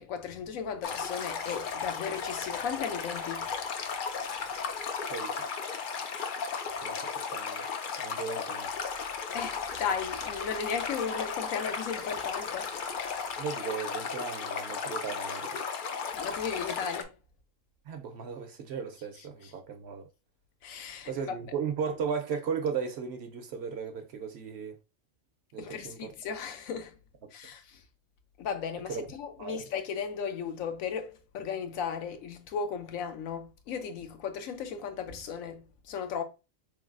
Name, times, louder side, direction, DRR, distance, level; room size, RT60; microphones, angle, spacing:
voice 1, 0.0-3.5 9.3-12.8 16.1-17.1 19.4-19.5 20.6-21.4 25.6-27.0 27.3-27.8 28.4-36.2, left 6 dB, 90° left, 1.1 m, -36 dB
Stream, 0.8-17.0, left 6 dB, 65° left, 0.5 m, -35 dB
voice 2, 5.1-5.4 6.8-7.6 8.0-8.7 13.4-15.6 17.9-20.1 21.0-24.7 25.5-26.1 28.9-29.1 29.4-29.6, right 6 dB, 60° right, 0.8 m, -36 dB
3.8 x 3.3 x 2.4 m
omnidirectional pair, 1.4 m